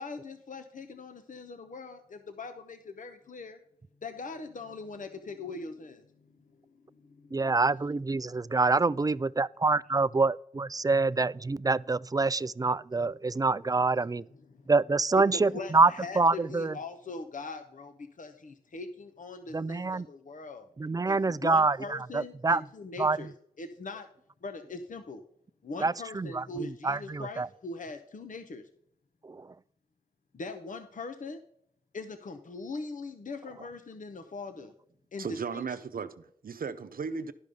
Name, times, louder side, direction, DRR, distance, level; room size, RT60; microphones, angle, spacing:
voice 1, 0.0-3.6 4.0-6.3 6.9-7.4 14.5-14.6 15.3-20.7 21.1-23.3 23.6-24.1 24.4-25.2 25.6-28.6 30.3-31.4 31.9-34.7 35.1-35.7, left 3 dB, 60° left, 0.8 m, -41 dB
voice 2, 7.3-14.2 14.7-16.8 19.5-20.1 20.8-22.6 23.0-23.3 25.8-27.5 29.2-29.5, right 3 dB, 25° right, 0.3 m, -26 dB
voice 3, 35.2-37.3, right 5 dB, 75° right, 0.7 m, -36 dB
12.0 x 5.3 x 5.0 m
cardioid pair, 45°, 15 cm